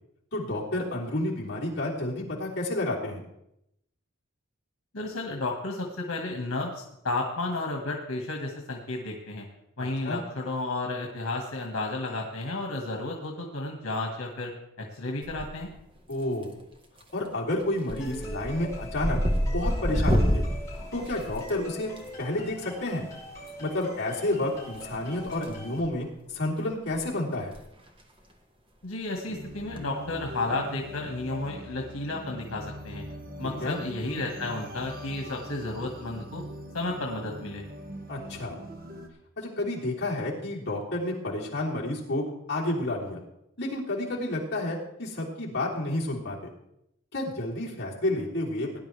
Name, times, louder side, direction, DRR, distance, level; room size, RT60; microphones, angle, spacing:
voice 1, 0.3-3.2 9.8-10.2 16.1-16.5 17.1-19.2 19.5-20.4 20.9-21.9 22.2-23.0 23.6-27.5 33.4-33.8 38.1-38.6 39.4-43.2 43.6-46.5 47.1-48.8, left 1 dB, 50° left, -5 dB, 3.5 m, -30 dB
voice 2, 4.9-9.5 9.8-14.5 14.8-15.7 28.8-33.0 33.4-36.4 36.7-37.6, left 2 dB, 85° left, 1 dB, 1.8 m, -32 dB
sound 1, 15.2-15.8 16.1-16.6 17.0-17.3 17.6-22.0 23.4-23.5 24.7-25.5 25.8-26.0 26.6-26.7 26.9-27.0 27.4-27.6 27.9-28.0 29.5-29.8, equal, 25° right, 1.4 m, -28 dB
sound 2, 18.0-25.8, equal, 15° left, 5.6 m, -43 dB
sound 3, 29.2-39.1, equal, 45° right, 1.6 m, -41 dB
18.0 x 10.5 x 3.4 m, 0.82 s
head